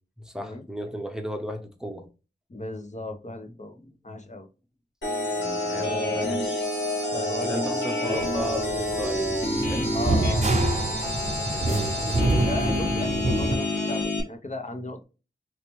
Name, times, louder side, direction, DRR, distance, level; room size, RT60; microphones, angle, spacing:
voice 1, 0.2-2.1 3.8-3.9 5.4-6.7 7.4-10.0 11.4-11.9, equal, 5° right, 0.8 m, -35 dB
voice 2, 2.5-3.7 4.0-4.5 5.7-6.5 7.1-8.3 9.9-10.8 11.2-11.9 12.5-15.0, left 2 dB, 40° left, 0.8 m, -35 dB
sound 1, 5.0-14.2, left 1 dB, 80° left, 1.6 m, -28 dB
Wind instrument woodwind instrument, 5.3-12.2, left 1 dB, 20° left, 1.1 m, -42 dB
sound 2, 8.1-13.5, right 2 dB, 35° right, 0.6 m, -26 dB
3.2 x 2.8 x 3.0 m
wide cardioid pair, 70°, 19 cm